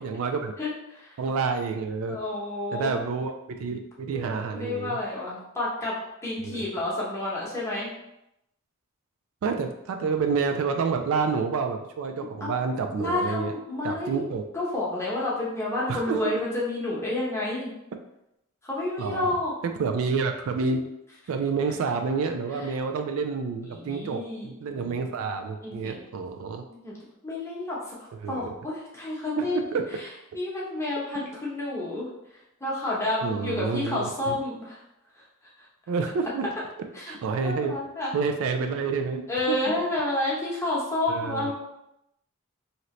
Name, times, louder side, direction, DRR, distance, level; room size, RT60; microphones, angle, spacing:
voice 1, 0.0-0.6 1.2-2.2 2.7-5.0 6.4-6.6 9.4-13.5 13.8-14.5 15.9-16.2 19.0-19.3 19.8-20.9 21.3-26.7 28.2-28.5 29.4-29.8 33.2-34.4 35.9-36.5 37.1-37.8 38.1-39.6 41.1-41.5, right 5 dB, 70° right, 6 dB, 0.3 m, -28 dB
voice 2, 0.6-1.2 2.1-3.0 4.1-6.0 6.2-7.9 12.2-12.5 13.0-14.2 14.5-17.7 18.6-19.5 22.5-22.8 23.7-24.6 25.6-26.0 26.7-26.9 27.2-28.0 28.3-30.1 30.3-32.1 32.6-34.8 35.1-35.2 36.9-37.1 37.4-38.1 39.3-41.5, left 2 dB, 15° left, -6 dB, 0.9 m, -30 dB
2.8 x 2.6 x 3.1 m, 0.84 s
head